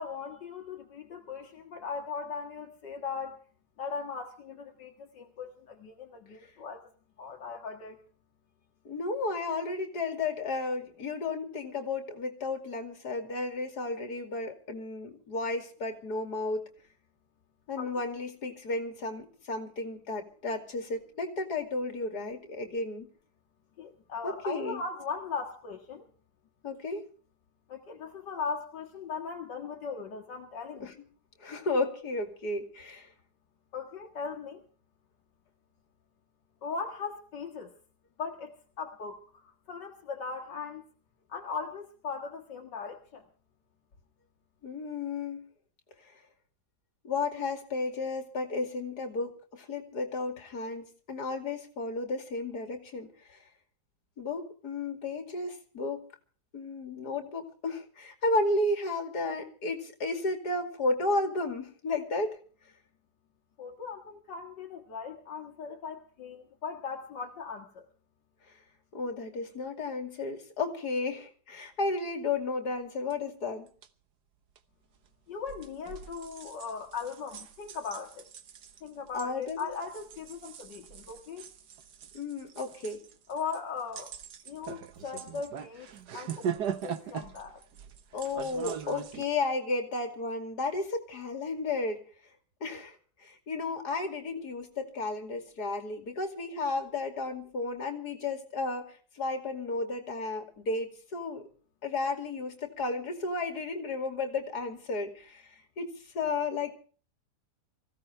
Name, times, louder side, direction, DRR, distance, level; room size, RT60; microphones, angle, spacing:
voice 1, 0.0-3.4 3.8-6.8 7.2-8.0 17.8-17.9 23.8-26.1 27.7-30.9 33.7-34.6 36.6-37.7 38.2-40.8 41.3-43.2 63.6-67.9 75.3-78.3 78.8-81.4 83.3-84.1 84.5-87.6, left 5 dB, 80° left, 2 dB, 2.3 m, -39 dB
voice 2, 8.8-16.7 17.7-23.1 24.2-24.8 26.6-27.1 30.8-30.9 31.4-33.1 44.6-45.5 46.0-46.1 47.0-53.4 54.2-56.1 56.5-62.4 68.9-73.7 79.1-79.7 82.1-83.0 88.1-92.0 92.6-101.4 101.8-106.7, left 3 dB, 65° left, 5 dB, 3.1 m, -33 dB
sound 1, 73.1-73.2 73.7-73.9 74.6-74.7 75.4-89.2, right 8 dB, 70° right, 1.7 m, -41 dB
24.0 x 16.0 x 3.3 m, 0.40 s
omnidirectional pair, 1.8 m